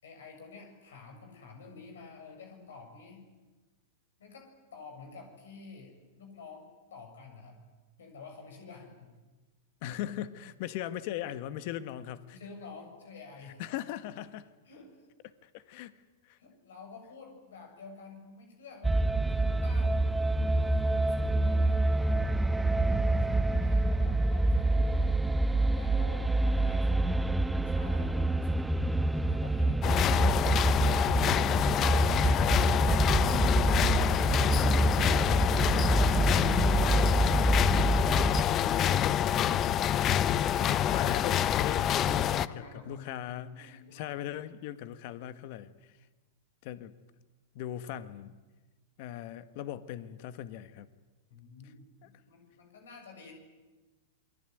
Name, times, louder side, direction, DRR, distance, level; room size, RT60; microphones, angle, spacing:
voice 1, 0.0-3.2 4.2-6.6 6.9-7.6 8.0-9.1 12.3-13.6 14.7-15.0 16.4-19.0 19.3-20.1 20.4-22.3 22.9-25.2 25.7-27.2 27.5-28.7 29.1-29.8 42.2-44.0 51.3-53.3, left 4 dB, 80° left, 4 dB, 7.0 m, -50 dB
voice 2, 9.8-12.4 13.6-14.5 15.2-15.9 16.2-16.4 37.1-37.4 40.6-46.0 46.6-46.9 47.6-48.4 49.0-50.9 51.6-51.7 52.0-52.1, left 12 dB, 55° left, 13 dB, 1.7 m, -39 dB
sound 1, 18.8-38.4, right 2 dB, 5° right, 0.9 m, -27 dB
sound 2, 29.8-42.5, left 10 dB, 35° left, 0.9 m, -27 dB
28.0 x 21.5 x 9.4 m, 1.2 s
hypercardioid pair, 120°, 0 cm